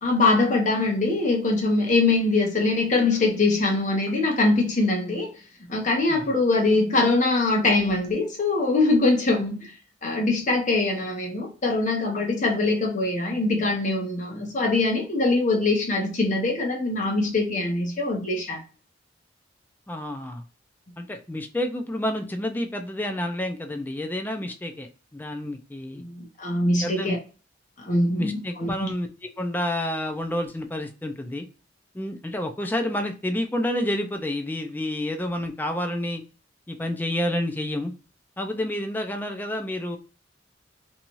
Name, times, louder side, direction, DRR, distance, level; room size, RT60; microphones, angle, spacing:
voice 1, 0.0-5.3 5.6-9.7 10.0-18.6 26.0-27.2 27.8-28.9, left 2 dB, 40° left, 0.8 m, -23 dB
voice 2, 19.9-20.4 21.0-26.0 26.8-27.2 28.1-31.5 31.9-36.2 36.7-37.9 38.4-40.0, left 1 dB, 10° left, 0.3 m, -29 dB
2.7 x 2.3 x 2.9 m
head